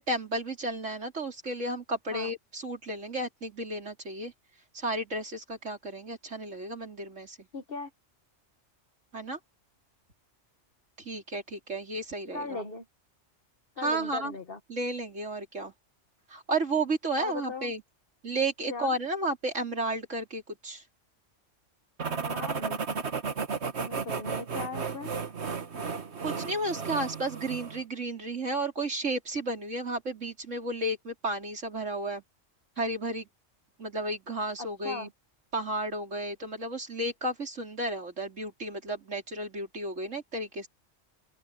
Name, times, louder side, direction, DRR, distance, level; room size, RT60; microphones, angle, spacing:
voice 1, 0.0-4.3 4.7-7.5 9.1-9.4 11.0-12.6 13.8-14.4 14.7-15.7 16.3-17.8 18.2-20.8 26.2-32.2 32.8-33.3 33.8-35.1 35.5-40.7, right 2 dB, 80° right, 4.4 m, -33 dB
voice 2, 7.5-7.9 12.3-12.8 13.8-14.6 17.2-17.7 18.7-18.9 22.0-22.8 23.8-25.1 34.8-35.1, left 4 dB, 50° left, 1.6 m, -38 dB
sound 1, 22.0-27.8, right 5 dB, 65° right, 1.8 m, -34 dB
omnidirectional pair, 1.3 m